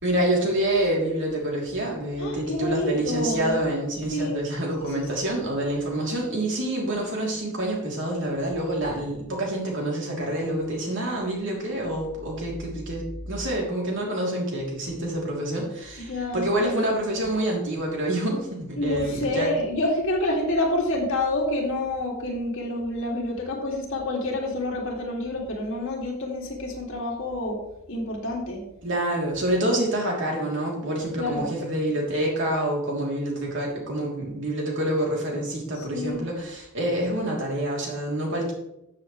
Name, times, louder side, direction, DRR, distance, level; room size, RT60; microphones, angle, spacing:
voice 1, 0.0-19.5 28.8-38.5, right 1 dB, 60° right, -1 dB, 3.1 m, -27 dB
voice 2, 2.2-3.6 4.1-4.4 4.9-5.1 16.1-16.4 18.8-27.6 27.9-28.6 31.2-31.5 35.8-36.2, left 1 dB, 65° left, -1 dB, 2.5 m, -28 dB
13.0 x 7.5 x 3.2 m, 0.83 s
head